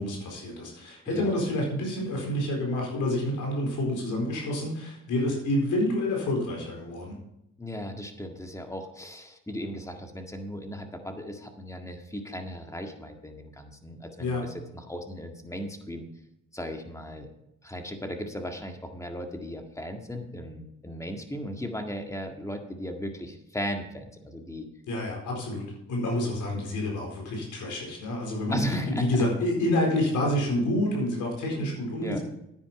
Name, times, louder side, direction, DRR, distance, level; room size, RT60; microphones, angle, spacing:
voice 1, 0.0-7.2 14.2-14.5 24.9-25.6 25.9-32.2, left 1 dB, 80° left, 0 dB, 4.3 m, -28 dB
voice 2, 7.6-16.1 16.5-17.3 17.6-24.7 28.5-29.0 32.0-32.2, equal, 10° left, 4 dB, 1.8 m, -36 dB
9.8 x 9.6 x 4.8 m, 0.83 s
cardioid pair, 90°, 30 cm